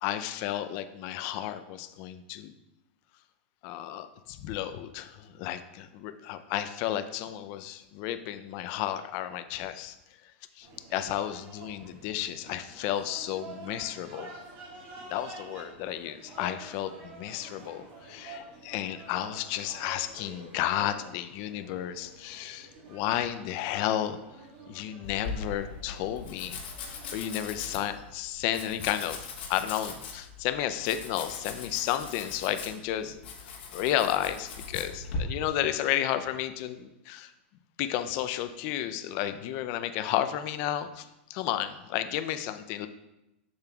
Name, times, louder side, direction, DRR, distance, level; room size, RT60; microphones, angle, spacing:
voice 1, 0.0-2.5 3.6-10.0 10.6-14.3 15.1-24.2 24.7-26.6 27.1-33.2 33.7-37.3 37.8-42.9, left 12 dB, 40° left, 10 dB, 0.4 m, -32 dB
sound 1, 10.6-27.9, right 3 dB, 40° right, 1.7 m, -49 dB
Domestic sounds home sounds, 25.0-35.2, left 5 dB, 70° left, 1.2 m, -40 dB
6.9 x 6.5 x 2.3 m, 0.93 s
supercardioid pair, 150°, 6 cm